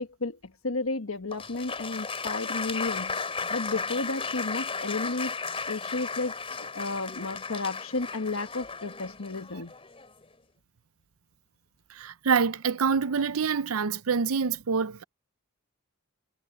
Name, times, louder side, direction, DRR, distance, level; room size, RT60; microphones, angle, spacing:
voice 1, 0.0-5.3 5.7-9.7, left 3 dB, 75° left, 1.4 m, -33 dB
Applause, 1.3-10.2, left 4 dB, 25° left, 3.6 m, -35 dB
voice 2, 12.0-15.0, right 5 dB, 80° right, 0.6 m, -26 dB
head